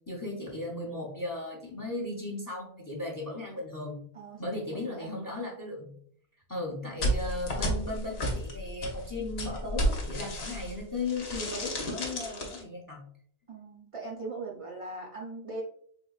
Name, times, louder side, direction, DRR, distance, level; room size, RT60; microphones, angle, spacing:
voice 1, 0.1-4.0 4.4-5.9 6.5-13.0, left 2 dB, 25° left, -1 dB, 0.5 m, -36 dB
sound 1, 7.0-10.8 11.1-12.6, equal, 75° left, 1.0 m, -32 dB
voice 2, 13.5-15.6, right 3 dB, 50° right, -1 dB, 0.4 m, -39 dB
3.7 x 2.6 x 2.3 m, 0.62 s
omnidirectional pair, 1.1 m